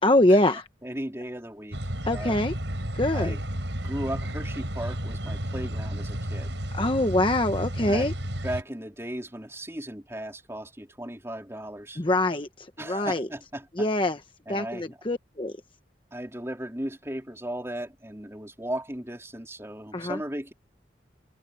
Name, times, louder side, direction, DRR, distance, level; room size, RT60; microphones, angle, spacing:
voice 1, 0.0-0.7 2.0-2.5 2.9-3.4 6.7-8.1 12.0-13.3 13.7-14.2 14.5-15.6 19.9-20.2, left 1 dB, 30° left, 1.1 m, -24 dB
voice 2, 0.8-1.8 2.1-2.4 3.1-3.4 3.8-6.5 7.9-8.1 8.4-12.0 12.8-13.7 14.5-15.0 16.1-20.5, right 1 dB, 15° right, 3.7 m, -36 dB
sound 1, 1.7-8.6, equal, 85° right, 6.1 m, -32 dB
open air
head